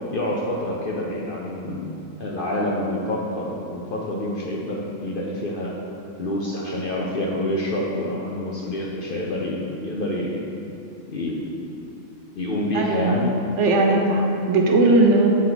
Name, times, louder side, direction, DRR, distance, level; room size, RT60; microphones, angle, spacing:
voice 1, 0.1-1.9 2.2-5.8 6.2-10.4 11.1-11.6 12.3-13.3, left 1 dB, 55° left, -3 dB, 0.6 m, -27 dB
voice 2, 12.7-13.2 13.6-15.3, right 2 dB, 65° right, 1 dB, 1.0 m, -18 dB
7.4 x 4.5 x 3.9 m, 2.8 s
omnidirectional pair, 1.4 m